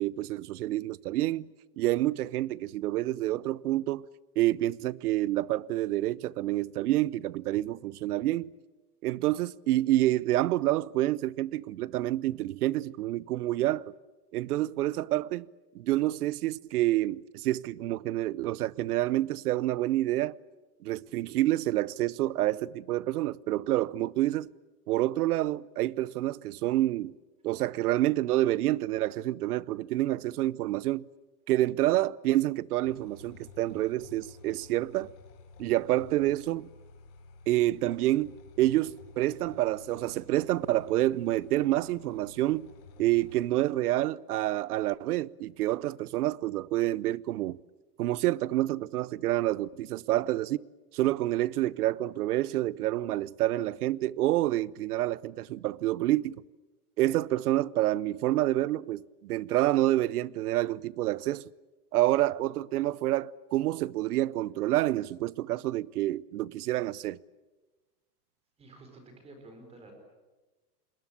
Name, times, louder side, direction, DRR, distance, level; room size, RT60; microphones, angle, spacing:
voice 1, 0.0-1.5 1.8-4.1 4.4-8.5 9.0-13.9 14.3-15.5 15.7-20.4 20.8-24.5 24.9-27.1 27.4-31.1 31.5-35.1 35.6-36.7 37.5-42.7 43.0-47.6 48.0-50.6 50.9-56.4 57.0-61.4 61.9-67.2, right 15 dB, 75° right, 0.8 m, -28 dB
sound 1, 32.8-43.5, left 4 dB, 50° left, 4.0 m, -52 dB
voice 2, 68.6-69.9, right 2 dB, 15° right, 4.4 m, -51 dB
28.0 x 21.0 x 8.6 m
supercardioid pair, 175°, 46 cm